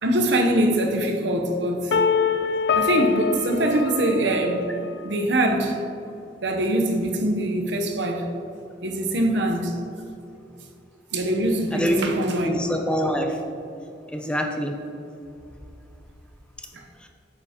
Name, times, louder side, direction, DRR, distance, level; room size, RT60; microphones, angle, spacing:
voice 1, 0.0-2.0 2.7-4.7 5.0-5.9 6.4-8.3 8.8-9.8 11.1-12.6 16.7-16.8, right 1 dB, 80° right, 3 dB, 0.8 m, -23 dB
sound 1, 1.9-4.9, left 6 dB, 65° left, 0.4 m, -24 dB
voice 2, 11.7-13.4 14.1-14.8 17.0-17.1, equal, 5° left, 3 dB, 0.5 m, -25 dB
8.5 x 6.9 x 2.9 m, 2.7 s
head